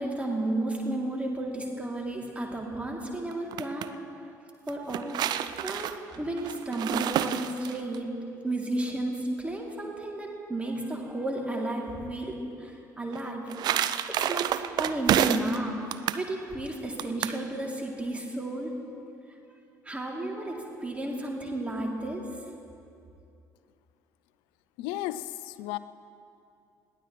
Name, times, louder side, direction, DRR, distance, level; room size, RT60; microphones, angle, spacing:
voice 1, 0.0-4.0 4.7-5.2 5.6-13.8 14.1-15.8 16.1-18.8 19.8-22.4, right 1 dB, 15° right, 0 dB, 2.6 m, -33 dB
sound 1, 3.3-3.9 4.7-8.0 13.1-15.6 15.9-16.3 17.0-17.4, right 11 dB, 45° right, 0.5 m, -29 dB
voice 2, 24.8-25.8, left 14 dB, 60° left, 15 dB, 0.5 m, -34 dB
21.5 x 16.0 x 3.1 m, 2.6 s
figure-of-eight pair, 50°, 10 cm